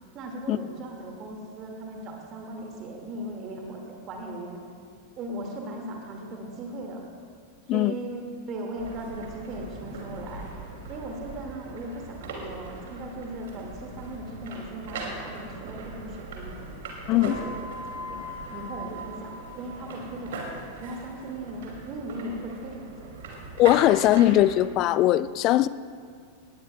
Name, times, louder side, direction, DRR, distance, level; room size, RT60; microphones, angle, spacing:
voice 1, 0.1-4.6 5.2-7.0 7.7-10.5 10.9-16.6 17.1-23.1, right 1 dB, 35° right, 1 dB, 1.9 m, -38 dB
sound 1, 8.7-24.6, right 3 dB, 55° right, 2.4 m, -40 dB
sound 2, 17.2-19.8, left 1 dB, 75° right, 2.2 m, -40 dB
voice 2, 23.6-25.7, left 14 dB, 40° left, 17 dB, 0.3 m, -20 dB
19.0 x 17.5 x 2.2 m, 2.2 s
figure-of-eight pair, 90°, 0 cm